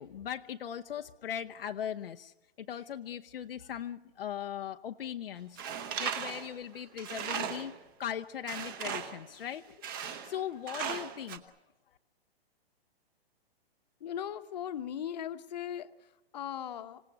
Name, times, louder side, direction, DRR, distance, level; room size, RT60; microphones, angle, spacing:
voice 1, 0.0-7.7 8.0-9.8 10.1-11.4, left 9 dB, 65° left, 6 dB, 0.8 m, -39 dB
Tools, 5.6-7.8 8.5-9.3 9.8-10.4 10.7-11.4, right 7 dB, 20° right, 1.1 m, -37 dB
voice 2, 14.0-17.0, left 9 dB, 45° left, 10 dB, 1.1 m, -38 dB
26.5 x 17.5 x 9.3 m, 1.1 s
hypercardioid pair, 175°, 31 cm